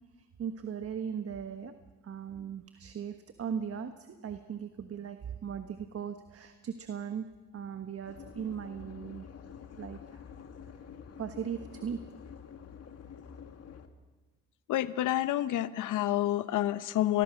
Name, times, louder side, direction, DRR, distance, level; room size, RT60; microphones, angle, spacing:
voice 1, 0.4-1.7 2.0-7.3 7.5-9.3 9.8-10.2 11.2-12.0, right 7 dB, 50° right, 8 dB, 1.4 m, -38 dB
sound 1, 8.0-13.9, left 7 dB, 55° left, 2.0 m, -48 dB
voice 2, 14.7-17.2, left 13 dB, 80° left, 14 dB, 1.0 m, -28 dB
28.0 x 20.5 x 6.4 m, 1.3 s
cardioid pair, 90°, 30 cm